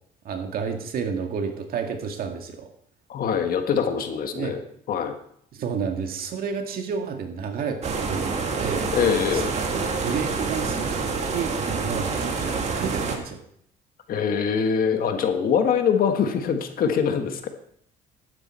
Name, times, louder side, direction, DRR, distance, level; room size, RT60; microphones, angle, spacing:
voice 1, 0.2-2.7 4.3-4.6 5.5-8.9 9.3-9.4 9.7-13.4, right 6 dB, 60° right, 5 dB, 1.9 m, -31 dB
voice 2, 3.1-4.6 4.9-5.1 8.9-9.5 14.1-17.5, left 7 dB, 60° left, 6 dB, 1.5 m, -23 dB
sound 1, 7.8-13.2, right 4 dB, 40° right, 2.0 m, -27 dB
11.5 x 9.9 x 4.4 m, 0.67 s
cardioid pair, 110°, 17 cm